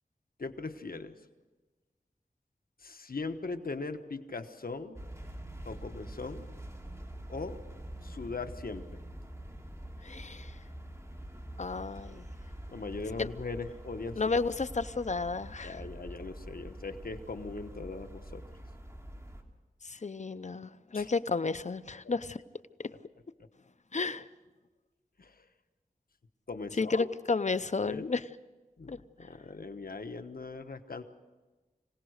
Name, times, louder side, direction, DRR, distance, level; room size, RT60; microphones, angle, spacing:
voice 1, 0.4-1.1 2.8-5.0 5.7-6.5 7.3-7.6 8.0-8.8 12.7-14.2 15.6-18.4 20.9-21.1 25.2-25.3 26.5-27.1 27.8-28.1 28.8-28.9 29.2-31.0, left 3 dB, 75° left, 8 dB, 1.2 m, -39 dB
sound 1, 5.0-19.4, right 1 dB, 20° right, 2.9 m, -45 dB
voice 2, 10.0-10.5 11.6-12.3 13.2-13.3 14.2-15.8 19.8-22.4 22.8-22.9 23.9-24.3 26.8-28.2 28.9-29.0, left 4 dB, 50° left, 13 dB, 0.7 m, -32 dB
25.5 x 18.0 x 6.5 m, 1.2 s
wide cardioid pair, 55°, 15 cm